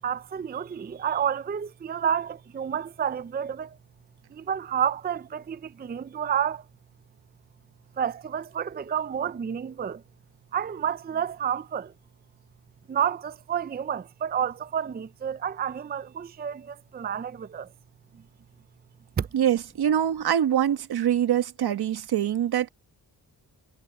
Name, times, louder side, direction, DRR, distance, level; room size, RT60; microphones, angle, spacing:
voice 1, 0.0-3.7 4.4-6.6 8.0-10.0 10.5-11.9 12.9-17.7 19.2-19.3, right 8 dB, 25° right, 0.5 m, -30 dB
voice 2, 19.3-22.7, right 10 dB, 75° right, 1.3 m, -24 dB
cardioid pair, 90°, 38 cm